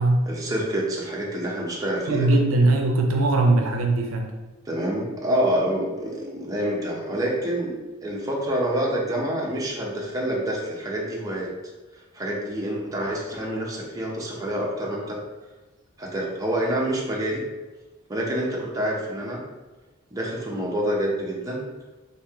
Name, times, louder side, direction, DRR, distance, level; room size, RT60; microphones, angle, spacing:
voice 1, 0.3-2.4 4.7-7.7 8.0-11.5 12.1-15.2 16.0-17.4 18.1-19.4 20.1-21.7, right 1 dB, 15° right, -3 dB, 0.6 m, -27 dB
voice 2, 2.1-4.3, right 2 dB, 80° right, 3 dB, 0.5 m, -20 dB
3.1 x 2.7 x 3.4 m, 1.2 s
head